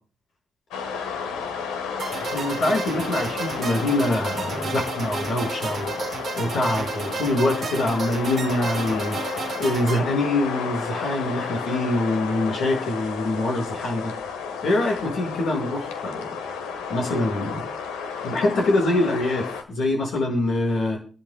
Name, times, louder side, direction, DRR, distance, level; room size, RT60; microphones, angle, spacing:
sound 1, 0.7-19.6, left 6 dB, 90° left, 1.3 m, -32 dB
sound 2, 2.0-10.0, right 5 dB, 55° right, 0.8 m, -32 dB
voice 1, 2.2-5.9 6.4-14.1 14.6-16.3 16.9-17.6 18.2-21.0, left 2 dB, 70° left, 0 dB, 5.7 m, -24 dB
28.0 x 11.0 x 2.3 m, 0.40 s
supercardioid pair, 45°, 0 cm